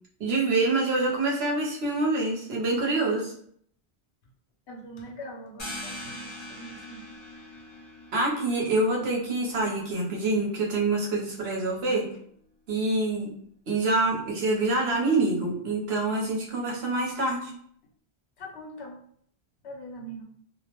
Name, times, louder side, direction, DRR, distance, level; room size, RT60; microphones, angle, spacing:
voice 1, 0.2-3.3 8.1-12.1 12.7-13.3 13.7-17.5, right 2 dB, 70° right, -2 dB, 0.9 m, -26 dB
voice 2, 4.7-7.0 18.4-19.0 19.6-20.2, right 1 dB, 85° left, 0 dB, 0.9 m, -42 dB
sound 1, 5.6-11.0, left 1 dB, 30° left, 0.6 m, -43 dB
2.4 x 2.0 x 2.8 m, 0.63 s
omnidirectional pair, 1.1 m